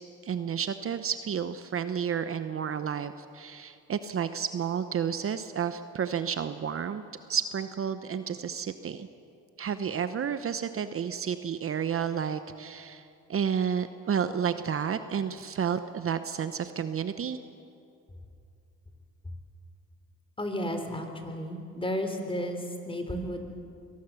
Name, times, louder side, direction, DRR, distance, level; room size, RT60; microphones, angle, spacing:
voice 1, 0.2-7.0 7.3-9.1 9.6-17.4, right 7 dB, 45° right, 11 dB, 0.9 m, -31 dB
voice 2, 20.4-23.4, equal, 15° left, 5 dB, 3.3 m, -33 dB
23.0 x 18.5 x 7.1 m, 2.5 s
cardioid pair, 90°, 30 cm